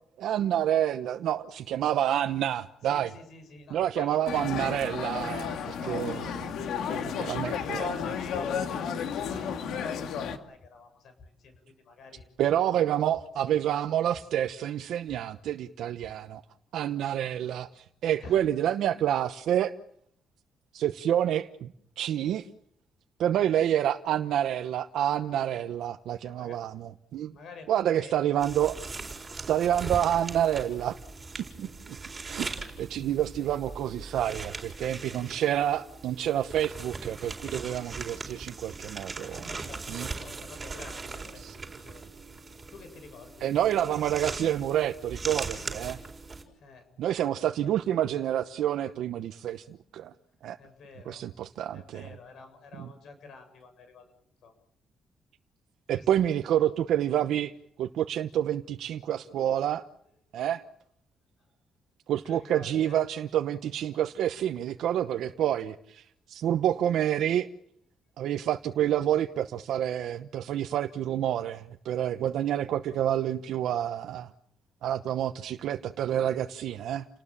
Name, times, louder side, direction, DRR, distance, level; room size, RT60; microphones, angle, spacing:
voice 1, 0.2-3.1 3.7-6.5 7.3-7.9 12.4-16.4 16.7-19.7 20.7-22.5 23.2-27.3 27.7-28.8 29.4-31.0 31.4-31.7 32.3-32.5 32.8-40.1 41.4-41.5 43.4-46.0 47.0-50.1 50.4-50.6 51.1-52.1 52.8-52.9 55.9-57.5 57.8-59.8 60.3-60.6 62.1-67.5 68.2-74.3 74.8-77.1, right 11 dB, 75° right, 7 dB, 1.0 m, -28 dB
voice 2, 2.9-4.2 6.7-12.3 18.2-18.4 26.1-26.6 27.3-28.3 31.6-31.8 39.1-42.0 42.7-44.1 46.5-46.9 50.6-51.3 51.7-54.1 54.4-54.5 55.9-56.3 61.4-61.5 62.2-63.0 68.8-68.9, left 4 dB, 60° left, 8 dB, 7.8 m, -49 dB
sound 1, 3.8-3.9 4.5-4.9 5.4-5.9 6.3-6.8 7.3-7.7 8.3-8.7 9.3-9.7 10.2-10.7 11.2-11.6 12.1-12.6 13.1-13.5 14.1-14.5 15.1-15.5 16.0-16.4, left 3 dB, 45° left, 3.2 m, -52 dB
sound 2, 4.3-10.4, left 7 dB, 75° left, 2.4 m, -32 dB
sound 3, 28.4-46.4, right 4 dB, 20° right, 4.3 m, -40 dB
30.0 x 19.5 x 7.3 m, 0.71 s
cardioid pair, 165°, 0 cm